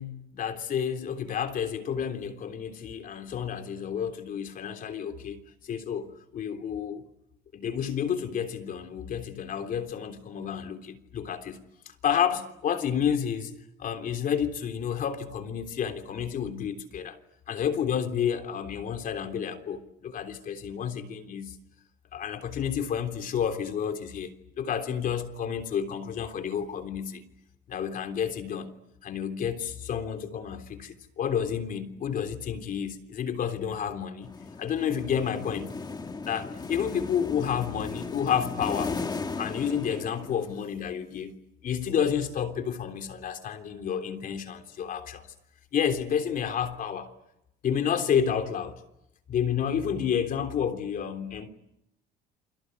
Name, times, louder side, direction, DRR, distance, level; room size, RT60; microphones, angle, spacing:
voice 1, 0.0-5.4 5.6-7.0 7.5-11.6 12.0-13.5 13.8-17.2 17.5-21.6 22.1-27.2 27.7-28.7 29.0-34.3 34.6-35.7 36.3-39.0 39.4-41.3 41.6-45.3 45.7-47.1 47.6-48.8 49.3-51.5, left 8 dB, 55° left, 3.4 m, -30 dB
sound 1, 34.2-40.7, left 4 dB, 25° left, 1.7 m, -36 dB
29.0 x 24.0 x 8.3 m
cardioid pair, 110°, 17 cm